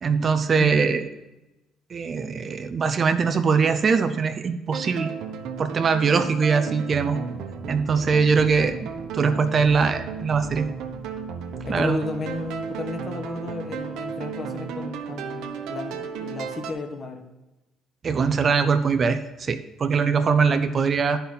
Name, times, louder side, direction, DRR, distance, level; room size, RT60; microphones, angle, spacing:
voice 1, 0.0-1.1 1.9-5.1 5.6-7.2 7.7-8.9 9.1-10.7 11.7-12.0 18.0-21.2, right 5 dB, 40° right, 9 dB, 0.5 m, -22 dB
sound 1, 4.7-16.7, right 6 dB, 80° right, 1.0 m, -34 dB
voice 2, 11.6-17.3, left 3 dB, 35° left, 5 dB, 1.3 m, -33 dB
10.5 x 5.6 x 5.8 m, 1.0 s
cardioid pair, 110°, 0 cm